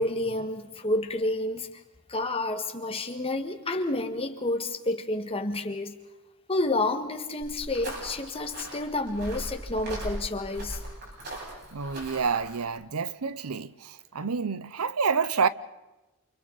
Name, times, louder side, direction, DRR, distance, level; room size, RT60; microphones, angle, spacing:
voice 1, 0.0-1.7 2.1-6.0 6.5-10.8, left 2 dB, 25° left, 1.7 m, -29 dB
sound 1, 7.4-12.6, right 1 dB, 50° right, 7.5 m, -39 dB
voice 2, 11.7-15.5, right 5 dB, 85° right, 0.7 m, -28 dB
29.0 x 28.5 x 4.1 m
head